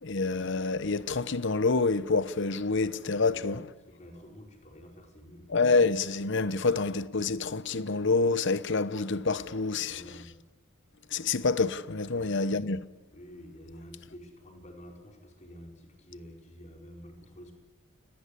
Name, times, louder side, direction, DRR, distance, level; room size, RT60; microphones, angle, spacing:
voice 1, 0.0-3.6 5.5-10.0 11.1-12.8, left 3 dB, 60° left, 0.9 m, -27 dB
voice 2, 3.3-5.5 9.8-10.4 12.1-12.6 13.1-17.5, equal, 35° left, 4.8 m, -49 dB
29.5 x 19.0 x 8.3 m
head